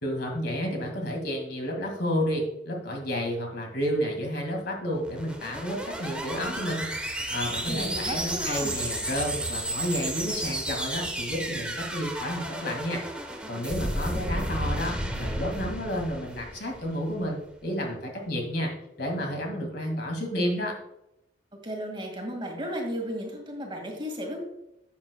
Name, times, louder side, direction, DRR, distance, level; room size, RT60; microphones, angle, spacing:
voice 1, 0.0-13.0 13.5-18.7 19.0-20.7, equal, 65° left, 2 dB, 2.0 m, -31 dB
sound 1, 4.9-17.3, right 1 dB, 5° right, 1.0 m, -33 dB
voice 2, 7.7-8.8 21.6-24.4, equal, 30° right, 2 dB, 1.9 m, -34 dB
11.5 x 7.7 x 2.2 m, 0.83 s
head